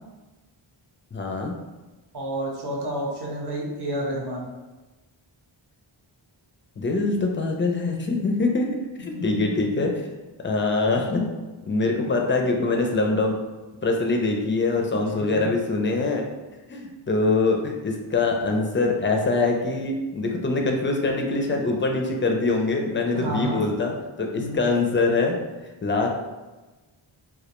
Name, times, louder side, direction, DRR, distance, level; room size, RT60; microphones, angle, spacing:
voice 1, 1.1-1.5 6.8-8.7 9.0-9.9 10.4-11.3 11.7-13.4 13.8-16.3 16.7-25.4 25.8-26.1, left 3 dB, 25° left, 2 dB, 0.3 m, -23 dB
voice 2, 2.1-4.5 9.1-9.6 15.1-15.5 23.1-23.6 24.4-24.6, right 1 dB, 50° right, -3 dB, 0.7 m, -30 dB
2.2 x 2.1 x 2.9 m, 1.2 s
wide cardioid pair, 60°, 50 cm